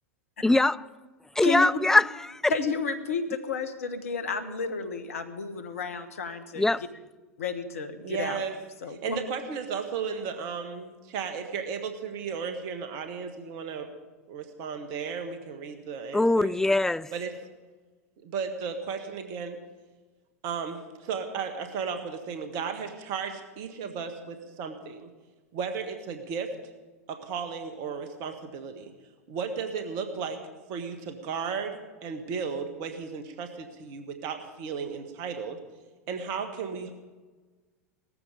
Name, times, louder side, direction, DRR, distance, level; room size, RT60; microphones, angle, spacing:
voice 1, 0.4-0.8 1.4-2.5 6.6-6.9 16.1-17.1, left 2 dB, 5° left, 0.4 m, -22 dB
voice 2, 2.5-6.6 7.4-8.4 8.8-9.2, left 4 dB, 70° left, 1.6 m, -31 dB
voice 3, 8.0-8.6 8.9-13.9 14.3-16.5 17.1-17.3 18.2-19.6 20.4-25.1 25.5-26.5 27.1-28.9 29.3-30.4 30.7-35.6 36.1-36.9, right 6 dB, 45° right, 1.8 m, -34 dB
18.0 x 14.0 x 5.2 m
figure-of-eight pair, 85°, 8 cm